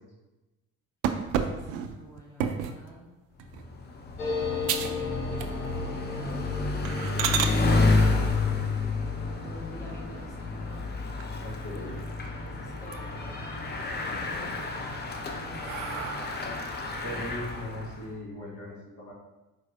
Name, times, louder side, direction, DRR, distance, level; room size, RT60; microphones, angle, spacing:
sound 1, 1.0-2.8 3.4-3.7 4.1-4.2 4.6-5.0 5.3-5.8 6.2-6.3 6.8-7.5 9.6-10.2 10.7-10.8 11.2-11.3 11.6-12.4 12.7-13.3 13.7-14.4 14.9-16.6, right 8 dB, 65° right, 0.5 m, -32 dB
voice 1, 1.4-3.1 4.9-10.9 11.7-14.9 15.2-16.5, equal, 5° left, -5 dB, 1.4 m, -48 dB
Bicycle, 3.4-18.1, left 3 dB, 20° left, 0.6 m, -30 dB
sound 2, 4.2-13.3 13.6-13.7 13.9-14.5, left 4 dB, 85° left, 0.9 m, -38 dB
voice 2, 11.4-12.0 17.0-19.1, left 1 dB, 40° left, -5 dB, 1.3 m, -39 dB
4.6 x 4.3 x 2.6 m, 1.1 s
figure-of-eight pair, 50°, 46 cm